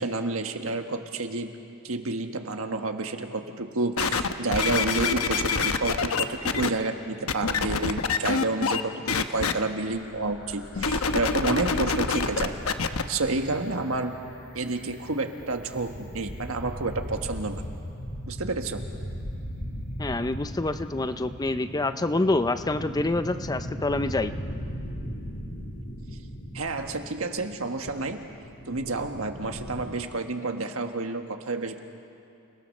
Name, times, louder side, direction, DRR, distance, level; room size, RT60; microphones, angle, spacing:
voice 1, 0.0-1.6 1.8-12.5 13.1-14.2 14.5-17.6 18.3-18.8 26.5-28.2 28.7-31.8, right 3 dB, 75° right, 5 dB, 1.6 m, -30 dB
sound 1, 4.0-6.7 7.3-8.8 9.1-9.5 10.8-13.0 13.7-13.8, left 5 dB, 85° left, 1.0 m, -26 dB
sound 2, 9.9-29.8, equal, 60° left, 3.1 m, -38 dB
voice 2, 20.0-24.3, left 2 dB, 20° left, 11 dB, 0.5 m, -27 dB
29.5 x 19.0 x 6.6 m, 2.7 s
head